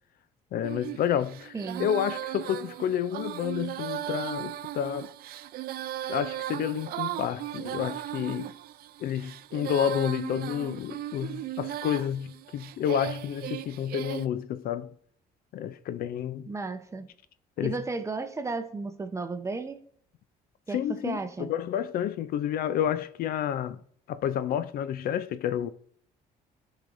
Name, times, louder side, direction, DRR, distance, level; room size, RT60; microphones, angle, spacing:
voice 1, 0.5-1.5 1.8-5.1 6.1-8.5 9.0-14.9 15.5-16.5 17.6-17.8 20.7-23.8 24.1-25.7, left 9 dB, 60° left, 0.4 m, -30 dB
Female singing, 0.6-14.3, right 13 dB, 65° right, 0.4 m, -37 dB
voice 2, 1.5-1.9 16.5-17.1 17.6-19.8 20.7-21.5, right 3 dB, 15° right, 0.7 m, -34 dB
13.5 x 5.0 x 2.6 m
cardioid pair, 110°, 17 cm